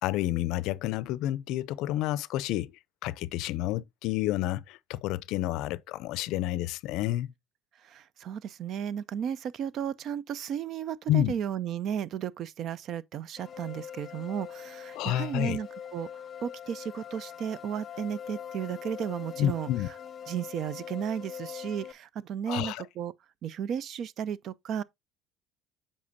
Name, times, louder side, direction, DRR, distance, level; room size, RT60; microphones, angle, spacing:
voice 1, 0.0-2.7 3.0-7.3 11.1-11.3 14.9-15.6 19.4-19.9 22.5-22.8, left 14 dB, 70° left, 0.4 m, -29 dB
voice 2, 7.8-16.1 16.4-19.7 20.3-23.1 23.4-24.8, right 9 dB, 55° right, 0.5 m, -34 dB
sound 1, 13.4-21.9, left 8 dB, 35° left, 0.7 m, -43 dB
8.4 x 5.4 x 2.6 m
cardioid pair, 110°, 0 cm